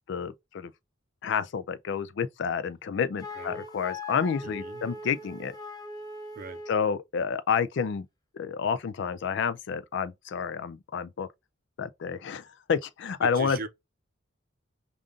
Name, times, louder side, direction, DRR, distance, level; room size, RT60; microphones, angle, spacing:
voice 1, 0.1-0.7 1.2-5.5 6.7-8.1 8.3-11.3 11.8-13.6, left 6 dB, 60° left, 0.4 m, -29 dB
Wind instrument woodwind instrument, 3.2-6.9, left 2 dB, 20° left, 0.7 m, -40 dB
voice 2, 4.4-4.8 6.3-6.6 13.2-13.7, right 3 dB, 45° right, 0.6 m, -39 dB
5.1 x 2.5 x 2.4 m
head